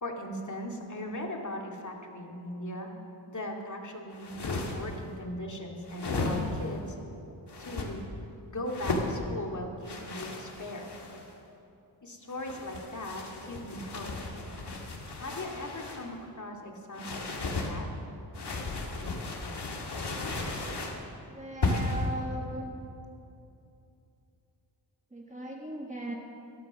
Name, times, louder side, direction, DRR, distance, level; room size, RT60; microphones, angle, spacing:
voice 1, 0.0-2.9 3.3-7.0 7.6-8.0 8.4-10.9 12.0-14.2 15.2-17.9, left 1 dB, 35° left, 1 dB, 2.4 m, -39 dB
sound 1, 4.1-5.0 5.9-6.7 7.5-7.9 8.7-9.1 9.8-11.3 12.3-16.1 16.9-17.7 18.3-21.0 21.6-22.1, left 2 dB, 55° left, 2.2 m, -34 dB
voice 2, 21.3-22.7 25.1-26.2, right 1 dB, 15° right, 0 dB, 1.4 m, -38 dB
13.0 x 11.5 x 6.2 m, 2.7 s
cardioid pair, 55°, 48 cm